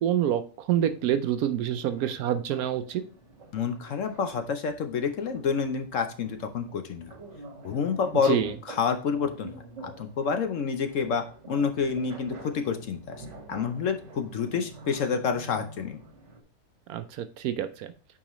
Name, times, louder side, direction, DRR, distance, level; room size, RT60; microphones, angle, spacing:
voice 1, 0.0-3.0 8.2-8.5 16.9-17.9, right 10 dB, 70° right, 11 dB, 1.0 m, -27 dB
sound 1, 0.7-16.4, right 2 dB, 50° right, 1.5 m, -47 dB
voice 2, 3.5-7.1 7.6-8.4 8.7-9.5 9.8-16.0, left 6 dB, 60° left, 7 dB, 0.9 m, -28 dB
8.7 x 4.8 x 3.0 m, 0.38 s
omnidirectional pair, 1.7 m